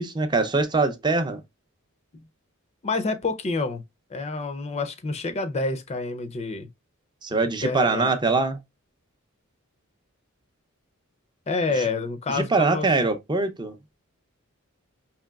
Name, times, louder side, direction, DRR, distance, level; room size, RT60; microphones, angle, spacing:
voice 1, 0.0-1.4 7.2-8.6 12.3-13.8, right 3 dB, 20° right, 0.5 m, -23 dB
voice 2, 2.8-3.8 4.1-6.7 7.6-8.1 11.5-12.9, left 3 dB, 30° left, 0.5 m, -28 dB
4.9 x 2.9 x 2.3 m
head